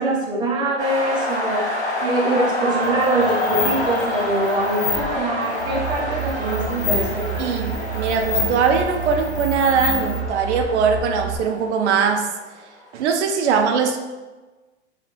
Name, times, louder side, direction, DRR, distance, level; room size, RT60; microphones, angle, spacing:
voice 1, 0.0-1.7 2.0-7.5, right 2 dB, 15° right, -3 dB, 0.5 m, -23 dB
sound 1, 0.8-12.5, left 1 dB, 10° left, 1.3 m, -28 dB
sound 2, 2.8-10.2, left 4 dB, 45° left, 0.5 m, -30 dB
sound 3, 5.6-11.4, right 7 dB, 85° left, 0.6 m, -30 dB
voice 2, 7.4-12.3 12.9-14.0, right 6 dB, 75° right, 5 dB, 0.5 m, -21 dB
3.3 x 2.3 x 2.9 m, 1.2 s
hypercardioid pair, 115°, 34 cm